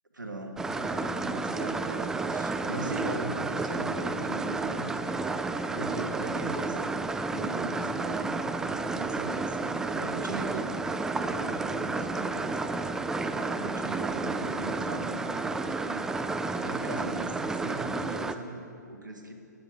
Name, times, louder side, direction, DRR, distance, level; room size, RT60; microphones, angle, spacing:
voice 1, 0.1-5.2 5.7-6.8 7.3-10.7 11.2-12.7 13.3-16.1 16.5-19.3, right 2 dB, 85° right, 4 dB, 1.7 m, -39 dB
sound 1, 0.6-18.3, right 3 dB, 5° right, 0.3 m, -31 dB
19.5 x 6.6 x 5.9 m, 2.5 s
figure-of-eight pair, 125°, 10 cm